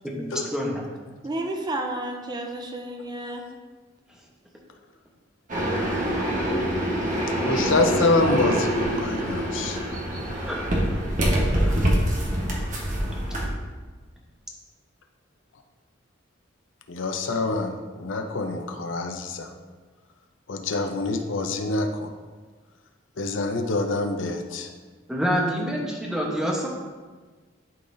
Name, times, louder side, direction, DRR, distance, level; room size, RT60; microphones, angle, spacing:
voice 1, 0.2-0.8 10.5-10.6 11.5-11.9 25.1-26.7, equal, 5° right, -2 dB, 1.0 m, -27 dB
voice 2, 1.2-3.4, right 1 dB, 20° right, 3 dB, 0.5 m, -31 dB
sound 1, 5.5-13.5, equal, 40° right, 1.2 m, -25 dB
voice 3, 7.4-9.8 16.9-19.5 20.5-22.1 23.2-24.7, left 2 dB, 75° left, 5 dB, 0.7 m, -26 dB
11.5 x 4.0 x 2.7 m, 1.4 s
head